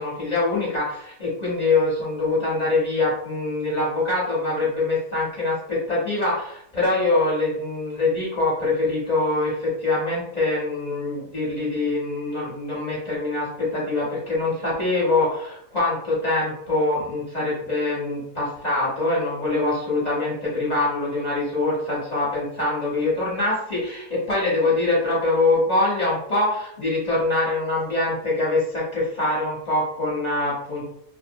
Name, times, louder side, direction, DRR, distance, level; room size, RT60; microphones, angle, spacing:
voice 1, 0.0-30.8, left 2 dB, 35° left, -7 dB, 0.9 m, -24 dB
2.9 x 2.1 x 2.6 m, 0.72 s
omnidirectional pair, 1.6 m